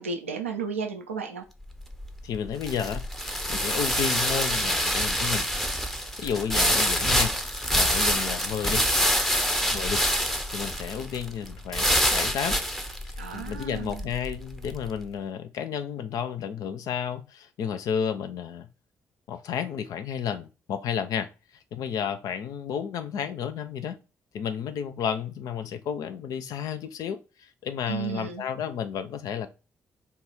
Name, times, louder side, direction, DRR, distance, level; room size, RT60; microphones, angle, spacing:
voice 1, 0.0-1.4 13.2-14.0 27.9-28.4, right 5 dB, 90° right, 0.4 m, -33 dB
sound 1, 1.6-14.9, equal, 5° left, 0.7 m, -26 dB
voice 2, 2.2-5.5 6.2-7.3 7.7-8.9 9.6-12.6 13.0-18.7 19.3-21.3 21.7-24.0 24.3-29.5, left 8 dB, 60° left, 0.5 m, -32 dB
4.1 x 2.3 x 4.4 m
figure-of-eight pair, 40°, 7 cm